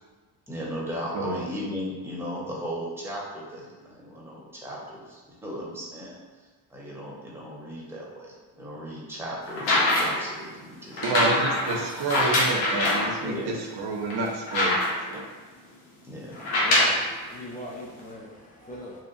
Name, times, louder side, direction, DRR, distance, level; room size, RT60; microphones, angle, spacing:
voice 1, 0.5-6.2 6.7-11.7 13.2-13.6 16.0-16.4, equal, 5° right, -5 dB, 0.9 m, -37 dB
sound 1, 9.5-10.3 11.0-13.1 13.7-13.8 14.1-15.2 16.3-17.0 18.0-18.1, left 1 dB, 85° left, 0.7 m, -24 dB
voice 2, 11.0-14.8 15.1-15.2, right 3 dB, 60° right, 0 dB, 0.6 m, -29 dB
voice 3, 16.3-19.0, left 1 dB, 20° left, -6 dB, 0.5 m, -40 dB
2.7 x 2.2 x 2.5 m, 1.4 s
supercardioid pair, 60°, 45 cm